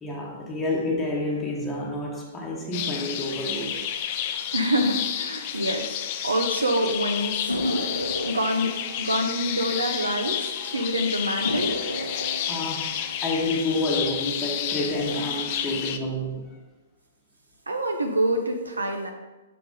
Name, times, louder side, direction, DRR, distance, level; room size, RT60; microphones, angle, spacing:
voice 1, 0.0-3.9 6.2-6.3 6.8-6.9 7.2-7.3 10.5-10.8 12.5-16.6 18.7-19.0, left 1 dB, 15° left, 1.1 m, -29 dB
sound 1, 2.7-16.0, left 9 dB, 40° left, 0.4 m, -31 dB
voice 2, 4.5-5.9 6.2-11.7 17.7-19.1, equal, 80° right, 0.7 m, -26 dB
sound 2, 7.5-10.5 10.8-10.9 11.4-14.4 14.8-15.4, left 1 dB, 90° left, 0.9 m, -33 dB
5.9 x 5.0 x 3.7 m
figure-of-eight pair, 115°, 0 cm